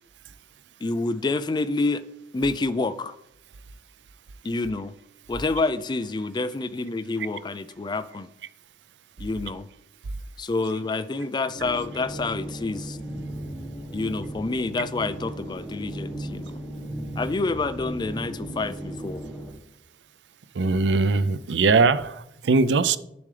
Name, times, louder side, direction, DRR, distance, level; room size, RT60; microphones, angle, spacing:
voice 1, 0.8-2.0 2.3-3.2 4.4-4.9 5.3-8.3 9.2-9.7 10.4-13.0 13.9-16.5 17.2-19.2, left 3 dB, 25° left, 0.4 m, -28 dB
sound 1, 11.5-19.5, right 1 dB, ahead, 1.3 m, -36 dB
voice 2, 20.5-23.0, right 4 dB, 85° right, 0.5 m, -21 dB
10.5 x 7.0 x 3.3 m
head